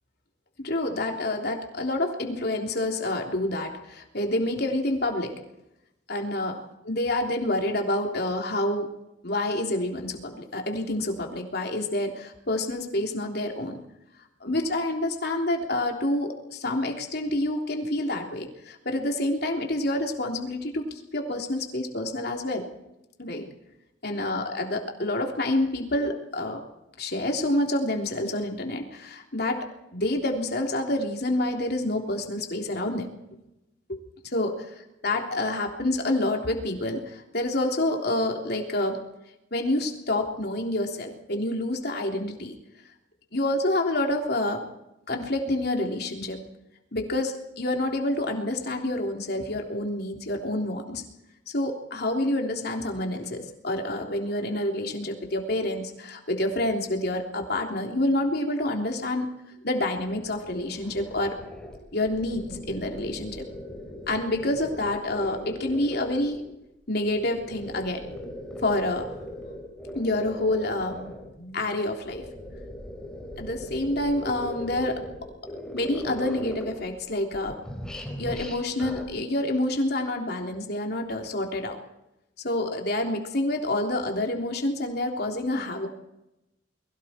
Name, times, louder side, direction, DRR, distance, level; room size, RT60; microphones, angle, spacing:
voice 1, 0.6-5.3 6.1-6.6 6.9-8.9 9.2-13.8 14.4-22.7 23.2-23.5 24.0-26.6 27.0-29.6 29.9-33.1 33.9-34.0 34.3-34.5 35.0-39.0 39.5-42.5 43.3-44.6 45.1-46.4 46.9-51.0 51.5-59.3 59.6-61.4 61.9-63.4 64.1-66.4 66.9-68.0 68.6-69.1 69.9-72.2 73.4-75.0 75.7-77.6 78.2-81.8 82.4-85.9, left 1 dB, 55° left, 2 dB, 3.4 m, -28 dB
sound 1, 60.0-66.5 67.0-71.3 71.9-77.0 77.3-79.0, left 1 dB, 5° left, 4.6 m, -39 dB
30.0 x 22.5 x 4.5 m, 0.89 s
head